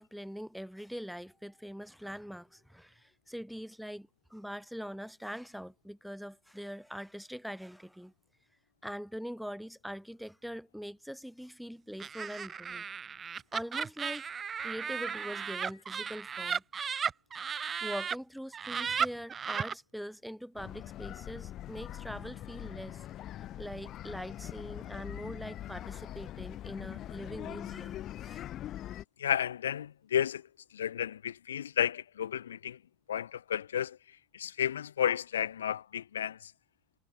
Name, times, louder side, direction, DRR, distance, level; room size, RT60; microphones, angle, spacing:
voice 1, 0.0-8.1 8.8-12.8 13.5-16.6 17.6-23.0 23.6-28.5, equal, ahead, 4.0 m, -43 dB
Laughter, 12.0-18.2 18.5-19.7, right 6 dB, 30° right, 1.4 m, -35 dB
sound 1, 20.6-29.0, left 13 dB, 45° left, 7.7 m, -42 dB
voice 2, 29.2-32.8 33.1-36.5, left 9 dB, 85° left, 0.8 m, -32 dB
hypercardioid pair, 85°, 0 cm